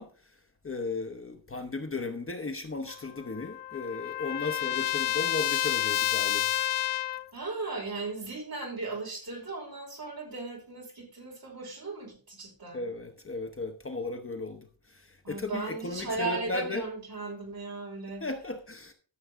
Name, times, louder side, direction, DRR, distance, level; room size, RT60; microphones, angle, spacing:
voice 1, 0.0-6.6 12.7-16.8 18.2-18.9, left 3 dB, 30° left, 0.8 m, -36 dB
Trumpet, 2.9-7.3, left 13 dB, 65° left, 0.5 m, -30 dB
voice 2, 7.3-12.9 15.2-18.2, right 3 dB, 50° right, 5.1 m, -37 dB
13.0 x 7.1 x 3.6 m
wide cardioid pair, 180°, 45 cm